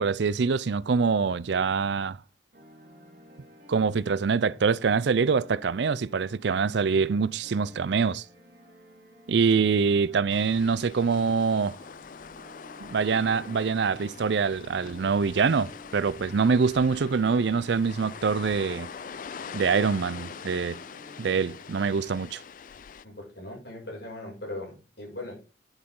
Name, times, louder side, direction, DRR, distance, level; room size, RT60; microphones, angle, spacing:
voice 1, 0.0-2.2 3.7-8.2 9.3-11.8 12.8-18.9 19.5-20.8 21.2-22.4, right 5 dB, 70° right, 0.4 m, -25 dB
sound 1, 2.5-22.1, equal, 50° right, 3.4 m, -53 dB
sound 2, 10.3-23.0, left 6 dB, 45° left, 0.4 m, -43 dB
voice 2, 23.0-25.4, left 1 dB, 60° left, 6.9 m, -39 dB
10.5 x 8.1 x 3.8 m
head